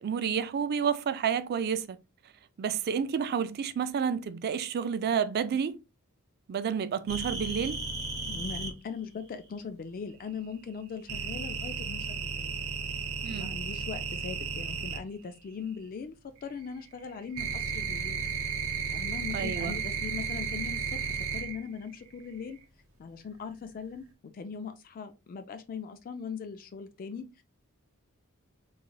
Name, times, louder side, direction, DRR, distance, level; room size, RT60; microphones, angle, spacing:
voice 1, 0.0-2.0 2.6-5.8 6.5-7.8 13.2-13.5 19.3-19.8, right 7 dB, 45° right, 0.3 m, -30 dB
sound 1, 7.1-8.7 11.1-15.0 16.4-21.7 22.0-22.5, right 5 dB, 70° right, 0.8 m, -34 dB
voice 2, 8.2-12.6 13.3-18.3 18.9-22.6 23.0-27.4, left 5 dB, 40° left, 0.3 m, -40 dB
3.8 x 3.1 x 2.2 m
head